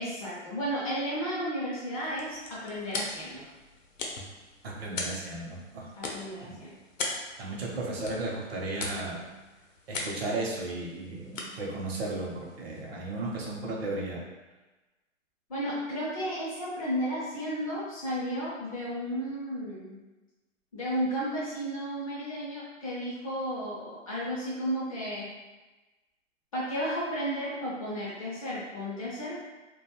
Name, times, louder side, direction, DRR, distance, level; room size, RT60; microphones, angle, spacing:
voice 1, 0.0-3.4 6.0-6.7 15.5-20.0 20.7-25.3 26.5-29.4, equal, 30° left, -7 dB, 0.4 m, -33 dB
sound 1, 1.9-13.1, left 3 dB, 80° left, 0.7 m, -41 dB
voice 2, 4.6-5.9 6.4-6.5 7.4-9.3 9.9-14.2, right 2 dB, 50° right, -2 dB, 0.7 m, -35 dB
2.4 x 2.2 x 2.9 m, 1.1 s
hypercardioid pair, 150°, 39 cm